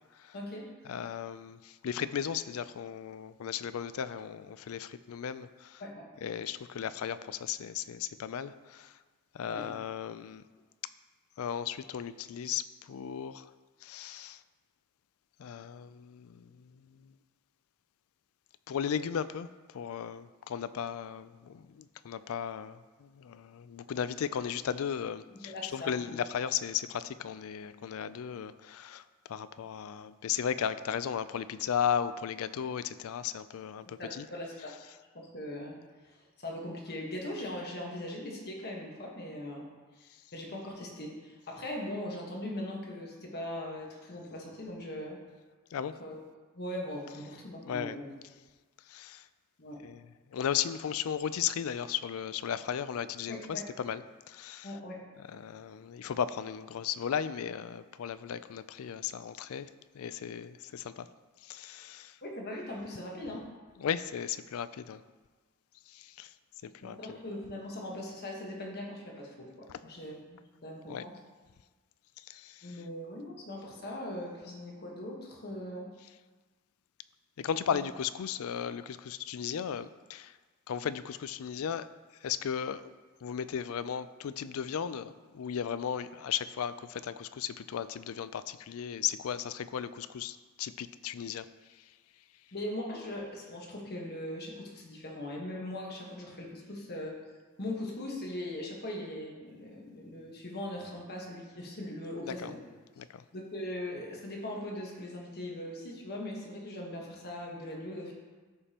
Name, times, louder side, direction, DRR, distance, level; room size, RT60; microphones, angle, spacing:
voice 1, 0.3-0.7 5.8-6.1 9.5-9.8 25.3-26.2 33.8-34.8 35.1-39.7 40.0-45.2 46.0-46.2 46.5-48.1 49.6-49.9 53.3-53.7 54.6-55.1 62.2-63.5 66.8-71.2 72.6-75.9 77.7-77.9 92.5-97.2 97.6-102.6 103.3-108.1, left 1 dB, 50° left, -1 dB, 1.3 m, -40 dB
voice 2, 0.9-5.8 6.2-8.9 9.4-10.4 11.4-12.6 12.9-13.4 13.8-14.4 15.4-16.4 18.7-19.5 19.7-29.0 29.3-34.3 45.7-45.9 47.7-48.0 48.9-49.2 49.8-50.0 50.3-54.0 54.3-54.7 55.3-59.7 60.0-61.1 61.5-62.1 63.8-65.0 65.9-66.3 66.6-67.0 70.9-71.0 72.3-72.5 77.4-80.3 80.7-81.9 82.2-82.8 83.2-91.4 102.4-102.5 103.0-103.2, left 8 dB, 70° left, 14 dB, 0.4 m, -35 dB
14.0 x 5.1 x 2.9 m, 1.3 s
head